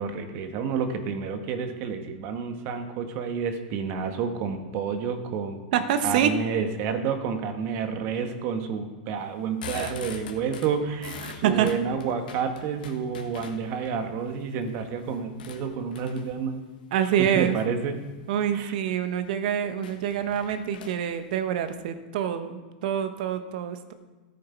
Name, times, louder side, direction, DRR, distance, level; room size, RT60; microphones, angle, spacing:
voice 1, 0.0-5.6 6.0-16.6 17.0-18.0 18.5-18.7, right 6 dB, 45° right, 6 dB, 1.5 m, -30 dB
voice 2, 5.7-6.3 9.7-9.9 11.2-11.7 16.9-17.6 18.3-23.9, right 9 dB, 60° right, 9 dB, 1.1 m, -26 dB
sound 1, 9.3-13.9 14.4-16.5 17.2-17.7 18.2-18.5 18.9-19.0 19.3-19.4 19.8-21.8, left 6 dB, 75° left, 1.7 m, -42 dB
14.0 x 7.6 x 4.5 m, 1.3 s
hypercardioid pair, 115°, 5 cm